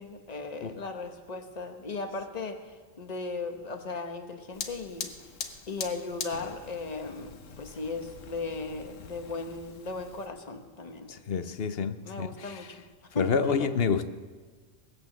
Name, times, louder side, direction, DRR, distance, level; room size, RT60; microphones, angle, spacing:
voice 1, 0.0-2.6 3.0-5.1 5.7-11.1 12.0-12.8 13.1-13.3 13.6-13.7, left 3 dB, 35° left, 6 dB, 1.2 m, -37 dB
Fire, 4.5-10.3, left 6 dB, 75° left, 1.4 m, -42 dB
voice 2, 11.1-12.7 13.1-14.1, left 6 dB, 55° left, 11 dB, 0.9 m, -29 dB
19.5 x 8.5 x 7.2 m, 1.4 s
omnidirectional pair, 1.3 m